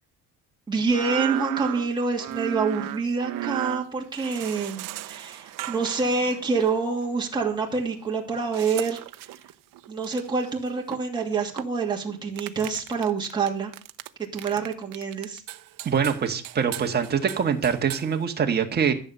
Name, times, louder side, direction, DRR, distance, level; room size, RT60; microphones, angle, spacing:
voice 1, 0.7-9.0 9.9-13.7 14.2-15.4, right 4 dB, 10° right, -1 dB, 2.6 m, -27 dB
sound 1, 0.9-6.8 8.5-11.9 12.4-14.1 14.4-18.1, right 13 dB, 65° right, 0.8 m, -35 dB
voice 2, 15.8-18.9, right 7 dB, 30° right, 4 dB, 1.7 m, -24 dB
14.0 x 7.8 x 6.7 m, 0.39 s
cardioid pair, 175°, 35 cm